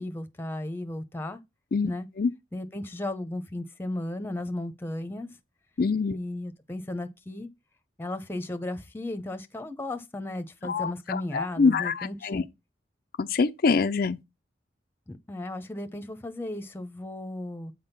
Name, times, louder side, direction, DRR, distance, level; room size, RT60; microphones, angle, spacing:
voice 1, 0.0-1.4 1.8-2.1 2.5-5.4 6.1-7.5 8.0-12.4 15.1-17.7, left 1 dB, 15° left, 0.8 m, -35 dB
voice 2, 5.8-6.2 10.7-12.4 13.2-14.2, left 4 dB, 55° left, 0.4 m, -25 dB
8.6 x 3.6 x 5.8 m
head